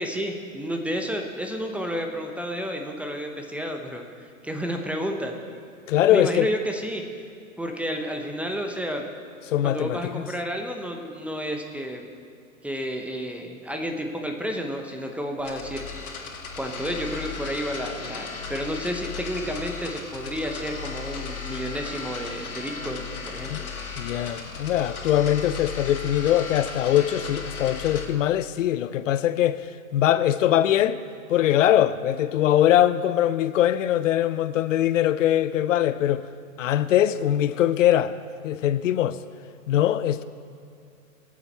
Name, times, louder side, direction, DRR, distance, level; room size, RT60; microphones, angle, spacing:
voice 1, 0.0-5.3 6.1-7.0 7.6-9.1 9.6-12.1 12.6-15.8 16.6-23.5, equal, 5° right, 0.7 m, -31 dB
voice 2, 5.9-6.5 9.5-10.3 23.5-23.7 24.0-31.0 31.3-36.3 36.6-38.2 38.4-39.2 39.7-40.2, left 11 dB, 65° left, 0.6 m, -22 dB
sound 1, 15.4-28.1, left 5 dB, 85° left, 1.9 m, -36 dB
21.5 x 7.3 x 4.3 m
hypercardioid pair, 120°, 42 cm